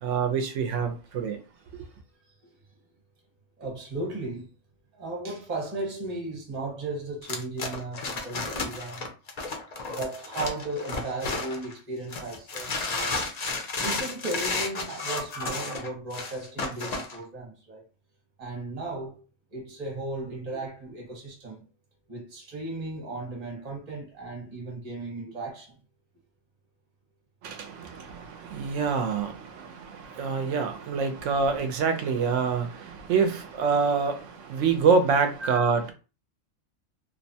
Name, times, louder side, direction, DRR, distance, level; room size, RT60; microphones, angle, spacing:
voice 1, 0.0-1.4 1.7-1.9 27.4-35.9, right 5 dB, 75° right, 0.9 m, -26 dB
voice 2, 3.6-4.5 4.9-9.1 9.9-13.3 13.8-17.8 18.4-19.2 19.5-21.6 22.1-25.7 35.4-35.7, right 2 dB, 35° right, 1.1 m, -35 dB
sound 1, 7.2-11.7 12.1-17.2, left 3 dB, 55° left, 0.4 m, -32 dB
2.8 x 2.1 x 2.7 m
omnidirectional pair, 1.3 m